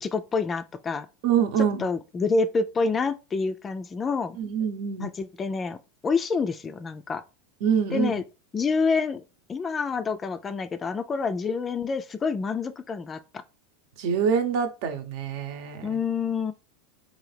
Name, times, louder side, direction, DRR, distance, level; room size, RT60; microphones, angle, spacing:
voice 1, 0.0-1.1 1.6-4.4 5.0-7.2 7.9-8.2 8.5-9.2 9.5-13.4 15.8-16.5, left 4 dB, 20° left, 0.3 m, -27 dB
voice 2, 1.2-1.8 4.4-5.1 7.6-8.2 14.0-15.9, right 7 dB, 65° right, 0.8 m, -25 dB
3.8 x 2.7 x 3.3 m
supercardioid pair, 125°, 0 cm